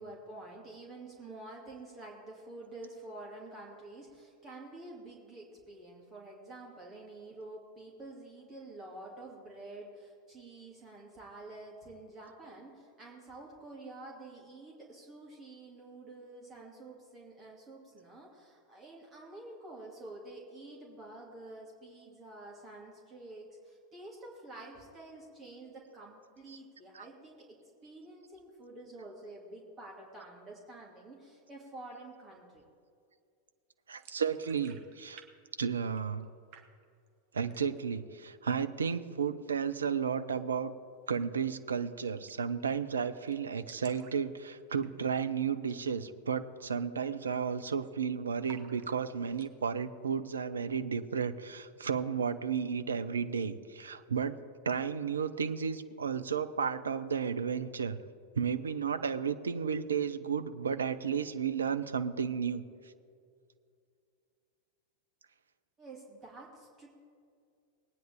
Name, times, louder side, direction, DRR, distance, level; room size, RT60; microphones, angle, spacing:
voice 1, 0.0-27.6 27.8-32.6 65.8-66.9, right 2 dB, 25° right, -3 dB, 2.4 m, -49 dB
sound 1, 33.9-35.3 35.5-36.2 36.5-37.1 37.4-37.9 38.3-38.4 38.7-39.3 41.0-41.2 41.5-41.6 41.8-41.9 42.3-42.6 42.9-43.0 43.2-45.2 45.6-45.8 46.2-46.3 46.8-47.1 47.4-48.0 48.4-49.5, right 8 dB, 45° right, 1.2 m, -57 dB
voice 2, 33.9-35.2 35.6-36.3 37.3-40.7 41.1-54.3 54.6-58.0 58.4-62.6, right 6 dB, 70° right, 11 dB, 0.6 m, -33 dB
20.5 x 9.2 x 3.6 m, 2.3 s
figure-of-eight pair, 90°, 0 cm